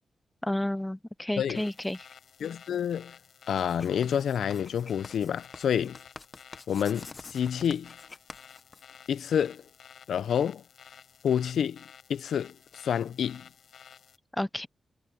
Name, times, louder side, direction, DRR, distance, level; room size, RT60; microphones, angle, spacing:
voice 1, 0.4-2.1 14.3-14.7, left 1 dB, 5° left, 0.4 m, -31 dB
sound 1, 1.5-14.2, left 7 dB, 65° left, 7.6 m, -53 dB
voice 2, 2.4-3.1 3.5-6.0 6.7-7.9 9.1-9.6 10.1-10.6 11.2-11.8 12.1-12.6 12.8-13.5, left 8 dB, 85° left, 0.5 m, -28 dB
Writing, 3.5-9.3, left 3 dB, 25° left, 0.9 m, -48 dB
wide cardioid pair, 165°, 0 cm